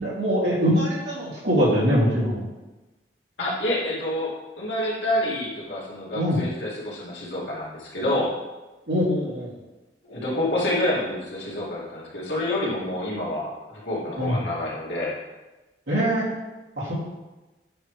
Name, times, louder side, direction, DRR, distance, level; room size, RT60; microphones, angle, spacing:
voice 1, 0.0-2.5 6.1-6.4 8.9-9.5 14.2-14.4 15.9-16.2 16.8-16.9, equal, 85° right, -6 dB, 2.5 m, -23 dB
voice 2, 3.4-8.3 10.0-15.1, left 1 dB, 85° left, -6 dB, 2.5 m, -28 dB
9.1 x 3.3 x 4.8 m, 1.1 s
head